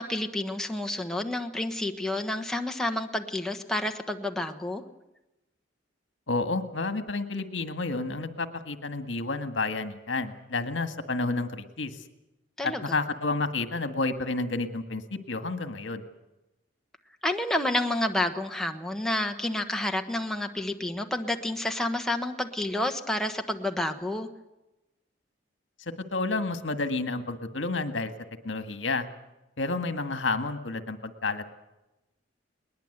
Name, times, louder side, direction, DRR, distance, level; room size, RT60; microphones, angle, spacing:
voice 1, 0.0-4.8 12.6-12.8 17.2-24.3, left 1 dB, 5° left, 4 dB, 1.2 m, -29 dB
voice 2, 6.3-12.0 12.6-16.0 26.1-28.1 28.4-29.1 29.6-31.5, left 3 dB, 75° left, 8 dB, 1.8 m, -30 dB
21.5 x 20.0 x 8.1 m, 0.97 s
head